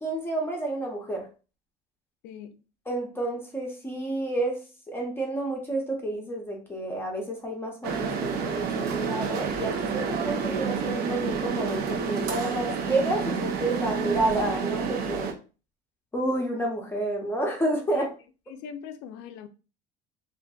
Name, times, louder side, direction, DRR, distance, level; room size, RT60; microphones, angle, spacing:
voice 1, 0.0-1.3 2.9-15.3 16.1-18.1, right 1 dB, 10° left, 0.6 m, -30 dB
voice 2, 2.2-2.6 17.9-18.1 18.5-19.5, left 8 dB, 70° left, 0.4 m, -41 dB
sound 1, 7.8-15.3, right 6 dB, 55° right, 0.5 m, -29 dB
2.5 x 2.4 x 2.3 m
cardioid pair, 120°, 19 cm